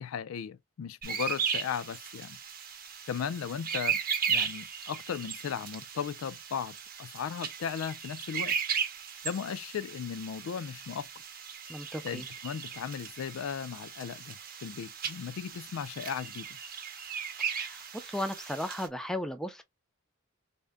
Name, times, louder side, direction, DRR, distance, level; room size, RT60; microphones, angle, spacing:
voice 1, 0.0-2.4 3.1-4.0 4.3-8.6 9.2-11.1 12.0-16.5, left 7 dB, 85° left, 0.3 m, -36 dB
sound 1, 1.0-18.9, right 7 dB, 45° right, 0.7 m, -36 dB
voice 2, 11.7-12.3 17.4-19.6, left 1 dB, 5° left, 0.4 m, -36 dB
3.7 x 2.1 x 3.3 m
head